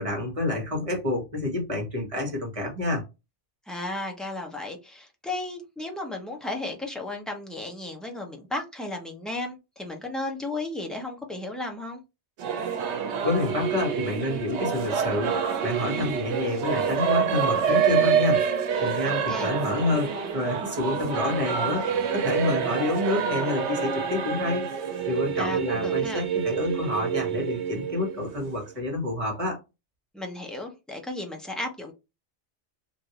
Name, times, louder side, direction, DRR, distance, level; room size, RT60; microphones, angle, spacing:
voice 1, 0.0-3.0 13.2-18.4 18.8-21.8 22.1-24.7 25.0-29.6, left 2 dB, 30° right, 1.3 m, -28 dB
voice 2, 3.7-12.0 19.0-19.5 25.4-26.2 30.1-31.9, left 2 dB, ahead, 0.6 m, -34 dB
Singing / Musical instrument, 12.4-28.7, right 7 dB, 85° right, 0.9 m, -27 dB
3.1 x 2.6 x 2.9 m
omnidirectional pair, 1.1 m